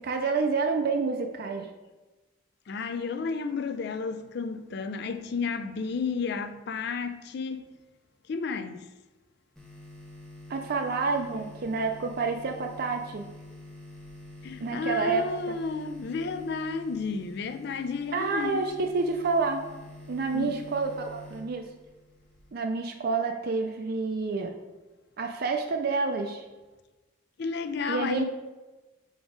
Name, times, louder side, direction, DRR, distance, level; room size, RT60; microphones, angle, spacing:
voice 1, 0.0-1.7 10.5-13.3 14.6-15.5 18.1-19.7 20.1-21.7 22.5-24.5 25.2-26.5 27.9-28.2, right 4 dB, 50° right, 0.4 m, -28 dB
voice 2, 2.7-7.6 8.3-8.9 14.4-18.6 20.3-20.6 27.4-28.2, left 4 dB, 55° left, 0.4 m, -32 dB
sound 1, 9.6-22.5, left 1 dB, ahead, 1.1 m, -47 dB
4.9 x 3.9 x 5.0 m
head